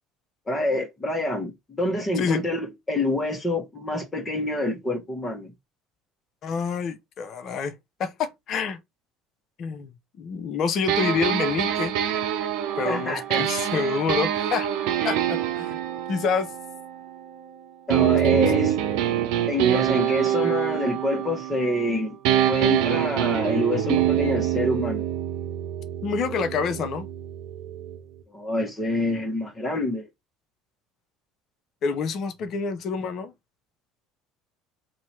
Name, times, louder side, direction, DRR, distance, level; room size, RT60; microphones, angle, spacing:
voice 1, 0.5-5.5 12.8-13.5 17.9-18.7 19.5-22.2 22.5-25.1 28.3-30.0, left 1 dB, 20° left, 1.5 m, -27 dB
voice 2, 6.4-7.7 8.0-8.8 9.6-9.9 10.2-11.9 12.8-14.7 15.0-15.8 16.1-16.5 18.3-18.5 26.0-27.1 31.8-33.3, left 5 dB, 55° left, 0.8 m, -27 dB
sound 1, 10.9-17.4 17.9-21.9 22.2-28.0, right 11 dB, 70° right, 0.8 m, -25 dB
2.9 x 2.8 x 4.5 m
hypercardioid pair, 75°, 0 cm